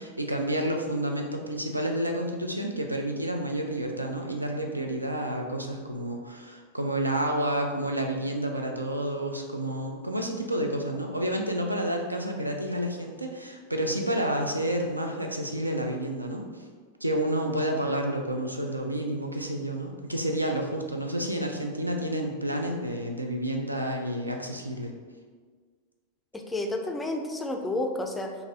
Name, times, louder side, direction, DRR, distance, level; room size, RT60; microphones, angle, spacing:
voice 1, 0.0-16.6 17.0-24.9, right 1 dB, 85° right, 2 dB, 0.4 m, -30 dB
voice 2, 26.3-28.3, left 2 dB, 10° left, 4 dB, 0.3 m, -30 dB
3.8 x 2.6 x 2.8 m, 1.5 s
figure-of-eight pair, 90°, 0 cm